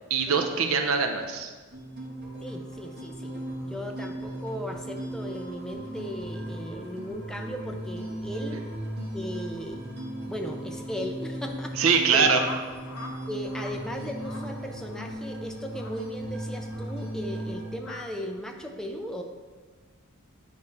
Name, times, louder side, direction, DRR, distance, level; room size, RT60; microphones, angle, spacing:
voice 1, 0.1-1.5 11.8-12.4, right 5 dB, 75° right, 5 dB, 0.6 m, -23 dB
sound 1, 1.7-17.7, right 1 dB, 50° right, 1.4 m, -37 dB
voice 2, 2.4-3.3 3.6-8.6 9.1-9.8 10.3-12.3 13.3-19.2, equal, 5° left, 3 dB, 0.5 m, -37 dB
sound 2, 12.3-13.2 13.4-13.8 14.2-14.5 14.9-15.1 15.7-16.0 16.7-16.9 17.8-18.0, left 2 dB, 75° left, 0.7 m, -41 dB
8.6 x 3.2 x 4.1 m, 1.4 s
head